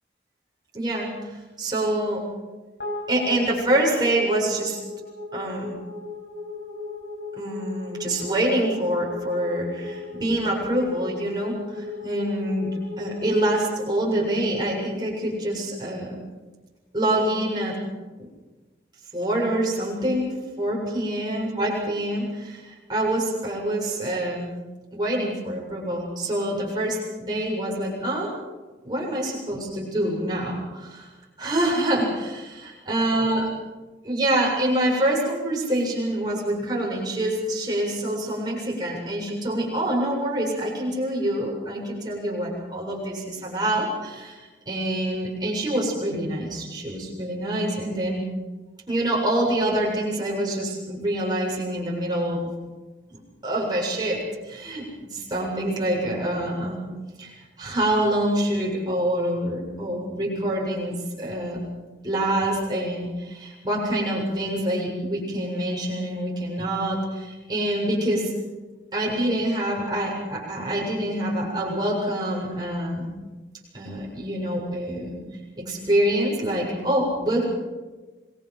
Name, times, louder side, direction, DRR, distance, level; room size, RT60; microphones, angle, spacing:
voice 1, 0.7-2.2 3.1-4.8 5.3-5.7 7.4-16.2 16.9-17.8 19.1-24.5 24.9-28.3 28.8-31.1 31.4-33.4 34.0-48.2 48.9-52.5 53.1-53.2 53.4-54.9 55.1-56.8 57.2-57.3 57.6-61.6 62.0-68.3 68.9-73.1 73.7-75.2 75.6-77.4, right 1 dB, 25° right, -3 dB, 7.3 m, -26 dB
sound 1, 2.8-15.3, left 3 dB, 70° left, 7.1 m, -37 dB
27.0 x 21.5 x 6.0 m, 1.2 s
head